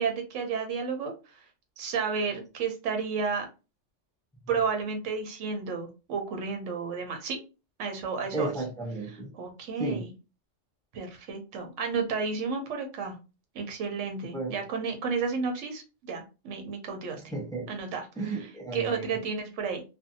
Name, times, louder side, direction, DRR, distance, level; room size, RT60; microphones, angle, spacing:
voice 1, 0.0-1.5 1.8-3.5 4.5-7.4 7.8-8.5 9.3-10.1 10.9-13.2 13.5-17.2 17.7-18.5 18.7-19.8, right 5 dB, 80° right, 1.0 m, -32 dB
voice 2, 8.3-9.3 9.8-10.1 14.3-14.6 17.3-17.7 18.2-19.2, right 2 dB, 5° left, 0.4 m, -33 dB
2.6 x 2.3 x 2.6 m
omnidirectional pair, 1.3 m